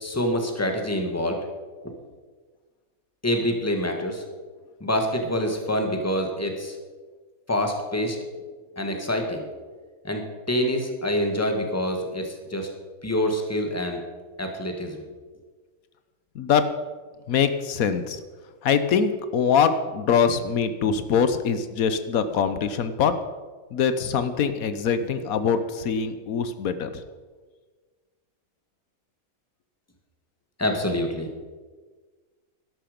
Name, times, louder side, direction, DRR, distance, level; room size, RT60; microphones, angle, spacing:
voice 1, 0.0-1.4 1.8-1.9 3.2-4.2 4.8-6.8 7.5-8.2 8.7-9.4 10.0-12.7 13.0-14.0 14.4-15.0 30.6-31.3, left 1 dB, 10° left, 4 dB, 1.6 m, -26 dB
voice 2, 17.3-18.2 18.6-23.1 23.7-26.9, left 6 dB, 80° left, 11 dB, 1.3 m, -23 dB
12.5 x 11.5 x 5.2 m, 1.4 s
omnidirectional pair, 1.5 m